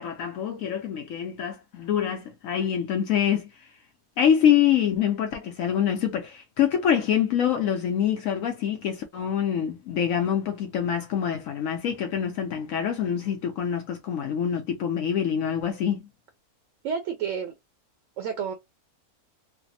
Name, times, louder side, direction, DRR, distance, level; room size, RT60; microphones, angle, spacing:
voice 1, 0.0-3.7 4.2-16.0, left 9 dB, 70° left, 0.9 m, -25 dB
voice 2, 16.8-17.5 18.2-18.5, right 7 dB, 65° right, 0.9 m, -30 dB
3.2 x 2.0 x 2.6 m
omnidirectional pair, 1.6 m